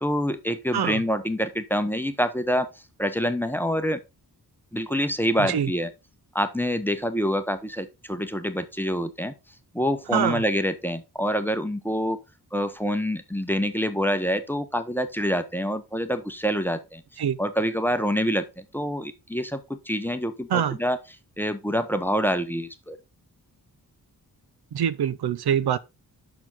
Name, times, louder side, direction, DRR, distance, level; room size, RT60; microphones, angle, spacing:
voice 1, 0.0-2.7 3.0-4.0 4.7-5.9 6.3-9.3 9.7-12.2 12.5-17.0 17.4-21.0 21.4-23.0, equal, 5° left, 0.7 m, -26 dB
voice 2, 10.1-10.4 17.2-17.4 20.5-20.8 24.7-25.8, right 9 dB, 80° right, 0.6 m, -24 dB
6.7 x 6.0 x 3.9 m
wide cardioid pair, 135°, 39 cm